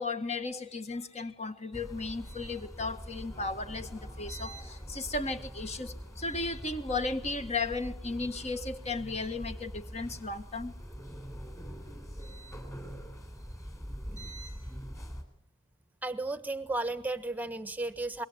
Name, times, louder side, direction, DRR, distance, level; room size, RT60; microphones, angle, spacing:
voice 1, 0.0-10.7, left 3 dB, 30° left, 9 dB, 1.8 m, -35 dB
sound 1, 1.7-15.2, equal, 15° left, 4.1 m, -43 dB
voice 2, 16.0-18.2, right 2 dB, 10° right, 12 dB, 1.3 m, -34 dB
26.0 x 22.0 x 9.9 m, 0.64 s
head